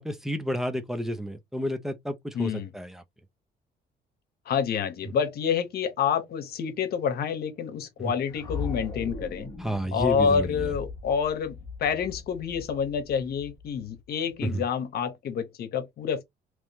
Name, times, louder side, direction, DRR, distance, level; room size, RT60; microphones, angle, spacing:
voice 1, 0.0-3.0 8.0-8.1 9.6-10.7 14.4-14.6, equal, ahead, 0.6 m, -31 dB
voice 2, 2.3-2.7 4.5-9.5 9.9-16.2, left 7 dB, 60° left, 1.0 m, -28 dB
sound 1, 8.3-14.4, left 4 dB, 20° left, 1.3 m, -39 dB
3.7 x 3.2 x 2.9 m
cardioid pair, 150°, 18 cm